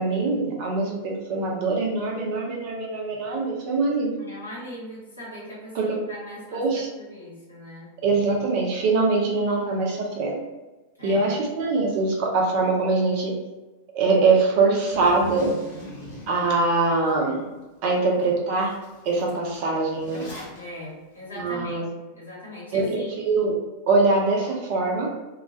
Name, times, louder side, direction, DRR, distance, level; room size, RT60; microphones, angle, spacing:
voice 1, 0.0-4.1 5.7-6.0 6.5-6.9 8.0-10.4 11.0-13.3 13.9-15.6 16.3-17.4 17.8-18.7 19.0-20.3 21.4-21.8 22.7-23.5 23.9-25.1, right 3 dB, 45° right, -1 dB, 0.6 m, -23 dB
voice 2, 4.2-6.6 7.0-7.9 11.0-11.3 20.5-23.1, left 1 dB, 80° left, -6 dB, 1.0 m, -40 dB
Zipper (clothing), 14.9-17.1 17.6-17.7 18.2-18.3 18.6-20.6, left 1 dB, 50° left, 0.9 m, -41 dB
2.2 x 2.1 x 2.6 m, 1.1 s
figure-of-eight pair, 90°, 0 cm